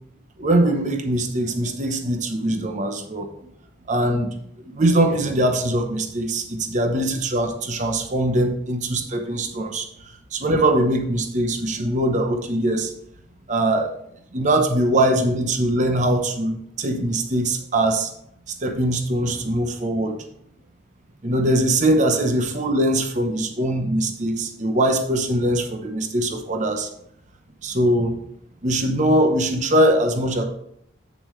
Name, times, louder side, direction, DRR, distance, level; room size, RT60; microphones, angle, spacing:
voice 1, 0.4-3.3 3.9-4.3 4.6-9.9 10.3-12.9 13.5-13.9 14.3-18.1 18.6-20.2 21.2-26.9 27.6-28.2 28.6-30.4, right 1 dB, 35° right, 5 dB, 0.9 m, -21 dB
8.5 x 6.8 x 3.2 m, 0.71 s
head